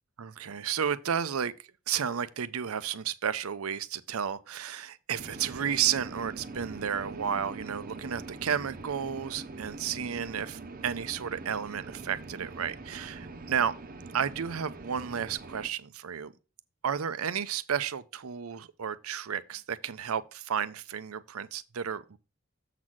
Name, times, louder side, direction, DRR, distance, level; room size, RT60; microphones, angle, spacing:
voice 1, 0.2-1.5 1.9-13.7 14.1-16.3 16.8-22.2, right 8 dB, 90° right, 0.6 m, -32 dB
sound 1, 5.2-15.7, right 3 dB, 45° right, 0.8 m, -43 dB
7.4 x 4.0 x 6.1 m
head